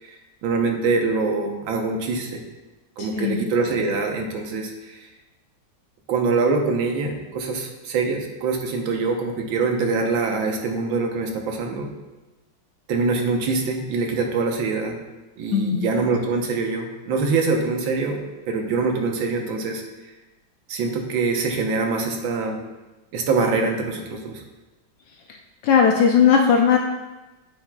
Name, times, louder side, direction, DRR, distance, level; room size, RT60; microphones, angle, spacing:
voice 1, 0.0-2.4 3.0-5.1 6.1-11.9 12.9-15.0 15.4-18.2 18.5-19.8 20.7-22.6 23.1-24.4, right 4 dB, 80° right, 2 dB, 1.7 m, -24 dB
voice 2, 3.0-3.4 15.5-15.8 25.6-26.8, left 7 dB, 75° left, 2 dB, 1.3 m, -17 dB
9.4 x 7.2 x 2.2 m, 1.1 s
omnidirectional pair, 2.1 m